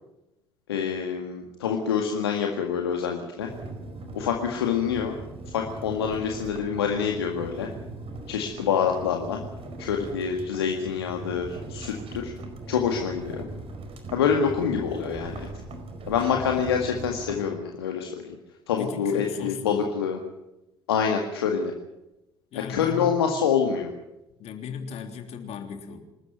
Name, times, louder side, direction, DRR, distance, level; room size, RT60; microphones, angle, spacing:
voice 1, 0.7-3.5 4.1-5.2 5.5-7.7 8.3-9.4 9.8-12.3 12.7-13.5 14.1-15.5 16.1-18.4 18.7-20.2 20.9-21.7 22.7-23.9, left 7 dB, 85° left, 2 dB, 1.9 m, -26 dB
sound 1, 3.4-17.5, right 2 dB, 50° right, 4.7 m, -40 dB
voice 2, 18.8-19.9 22.5-23.1 24.4-26.0, left 6 dB, 60° left, 5 dB, 3.3 m, -36 dB
26.5 x 13.0 x 9.3 m, 0.94 s
hypercardioid pair, 55°, 13 cm